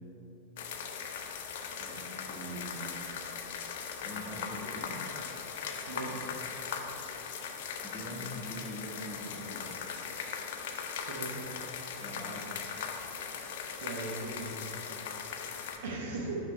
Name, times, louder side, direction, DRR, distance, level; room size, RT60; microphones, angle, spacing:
sound 1, 0.6-15.8, left 6 dB, 55° left, 0.5 m, -39 dB
voice 1, 1.7-3.1 4.0-5.0 6.1-6.2 7.8-9.7 12.0-12.5, equal, 5° left, -5 dB, 1.4 m, -43 dB
voice 2, 11.0-11.5 13.8-15.4 15.8-16.3, right 3 dB, 55° right, -1 dB, 1.0 m, -39 dB
6.1 x 5.1 x 4.3 m, 2.7 s
figure-of-eight pair, 90°, 0 cm